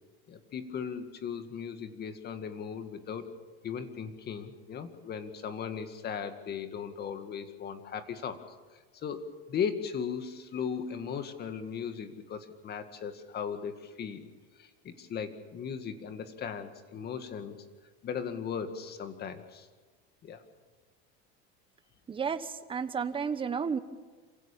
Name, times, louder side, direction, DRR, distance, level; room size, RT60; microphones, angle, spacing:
voice 1, 0.3-3.3 3.6-8.4 8.9-14.3 14.6-17.6 18.0-19.7 20.2-20.4, left 7 dB, 35° left, 8 dB, 2.0 m, -37 dB
voice 2, 22.1-23.8, right 6 dB, 15° right, 10 dB, 1.1 m, -32 dB
27.0 x 16.0 x 7.4 m, 1.4 s
supercardioid pair, 145°, 30 cm